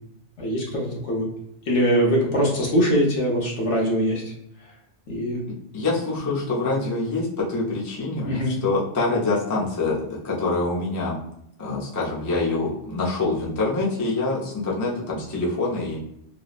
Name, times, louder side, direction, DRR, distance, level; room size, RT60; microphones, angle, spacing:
voice 1, 0.4-1.3 1.7-4.2 5.1-5.4 8.2-8.6, equal, 70° left, -1 dB, 1.1 m, -22 dB
voice 2, 5.7-11.2 11.6-16.0, left 3 dB, 30° left, -4 dB, 0.3 m, -25 dB
3.0 x 2.0 x 2.4 m, 0.76 s
omnidirectional pair, 1.2 m